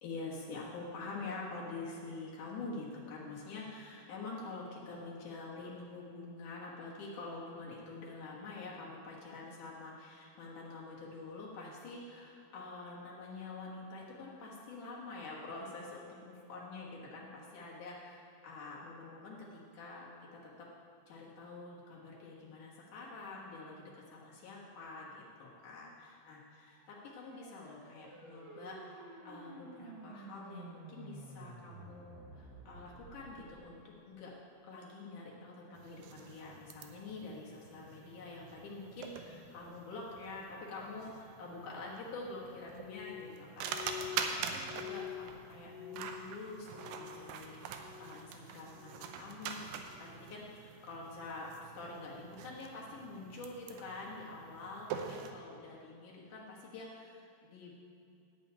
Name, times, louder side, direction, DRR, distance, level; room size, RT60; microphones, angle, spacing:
voice 1, 0.0-20.7 21.1-34.3 34.6-49.6 50.0-57.7, left 3 dB, 60° left, -4 dB, 2.5 m, -47 dB
sound 1, 26.7-33.6, right 2 dB, 65° right, 1.7 m, -52 dB
sound 2, 35.7-55.3, right 6 dB, 80° right, 2.7 m, -45 dB
Glass, 42.8-47.4 47.7-48.3 48.7-49.3 49.8-50.1, left 11 dB, 85° left, 2.5 m, -47 dB
11.0 x 5.4 x 8.7 m, 2.5 s
omnidirectional pair, 4.8 m